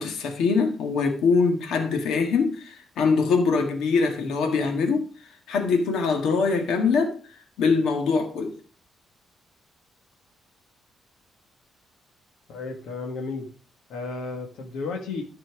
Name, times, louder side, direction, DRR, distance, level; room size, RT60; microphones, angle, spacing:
voice 1, 0.0-5.1 5.5-7.2 7.6-8.6, left 4 dB, 70° left, 1.7 m, -23 dB
voice 2, 12.5-13.5 13.9-15.2, left 4 dB, 85° left, 1.6 m, -33 dB
13.0 x 4.5 x 4.7 m
cardioid pair, 180°, 0 cm